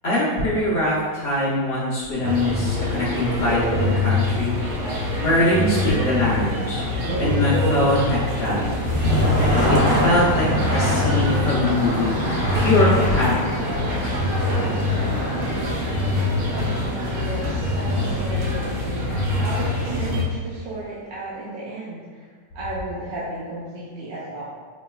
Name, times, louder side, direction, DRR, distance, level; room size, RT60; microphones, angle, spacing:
voice 1, 0.0-4.5 5.2-6.9 7.2-8.7 9.7-12.1 12.5-13.4, left 1 dB, 55° left, -8 dB, 0.8 m, -22 dB
sound 1, 2.2-20.2, left 2 dB, 65° right, 1.0 m, -24 dB
sound 2, 8.6-20.5, equal, 35° left, 1.1 m, -27 dB
voice 2, 16.5-24.5, right 2 dB, 85° right, -7 dB, 1.4 m, -34 dB
5.0 x 3.0 x 2.3 m, 1.5 s
omnidirectional pair, 2.0 m